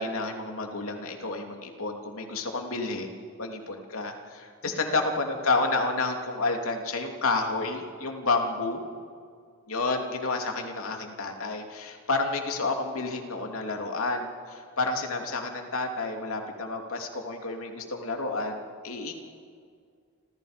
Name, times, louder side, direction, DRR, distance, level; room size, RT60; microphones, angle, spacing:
voice 1, 0.0-8.8 9.7-19.1, left 3 dB, 80° left, 3 dB, 2.9 m, -30 dB
29.5 x 27.0 x 5.2 m, 2.1 s
head